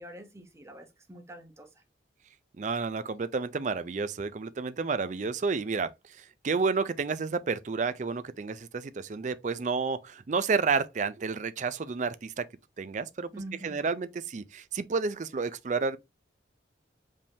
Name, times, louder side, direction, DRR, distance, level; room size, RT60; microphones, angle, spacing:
voice 1, 0.0-1.7 13.3-13.8, right 1 dB, 15° right, 0.8 m, -45 dB
voice 2, 2.6-5.9 6.2-12.4 12.8-13.3 13.6-16.0, right 4 dB, 40° right, 0.4 m, -30 dB
5.3 x 3.4 x 2.7 m
head